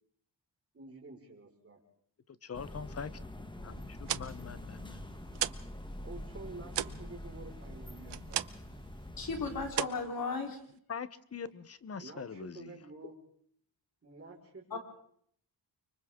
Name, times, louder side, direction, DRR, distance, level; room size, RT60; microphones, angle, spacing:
voice 1, 0.7-1.8 6.0-8.4 12.0-13.1 14.0-14.8, right 3 dB, 30° right, -1 dB, 5.0 m, -49 dB
voice 2, 2.4-3.1 3.4-5.0 10.9-12.7, left 6 dB, 35° left, 15 dB, 0.9 m, -43 dB
sound 1, 2.5-9.7, left 1 dB, 10° left, 1.3 m, -45 dB
sound 2, 3.8-5.7 6.0-8.8 9.1-9.4 9.7-10.8, right 11 dB, 75° right, 0.8 m, -37 dB
voice 3, 9.2-10.6 14.7-14.8, left 4 dB, 55° left, 3 dB, 3.8 m, -35 dB
29.5 x 25.0 x 3.7 m, 0.65 s
wide cardioid pair, 180°, 43 cm